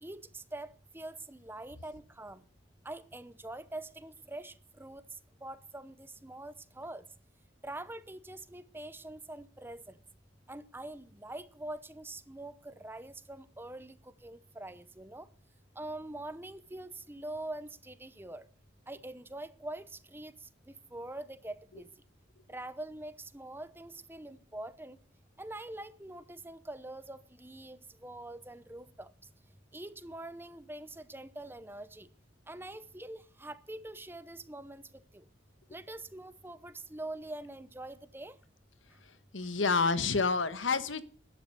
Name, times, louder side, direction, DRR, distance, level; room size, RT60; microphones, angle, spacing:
voice 1, 0.0-2.4 2.8-5.0 5.4-7.0 7.6-10.0 10.5-15.3 15.8-18.5 18.9-21.9 22.5-25.0 25.4-29.1 29.7-32.1 32.5-34.8 35.1-35.3 35.7-38.3, right 1 dB, 10° right, 0.8 m, -44 dB
voice 2, 39.3-41.0, left 4 dB, 80° left, 1.4 m, -28 dB
13.0 x 11.0 x 6.8 m
head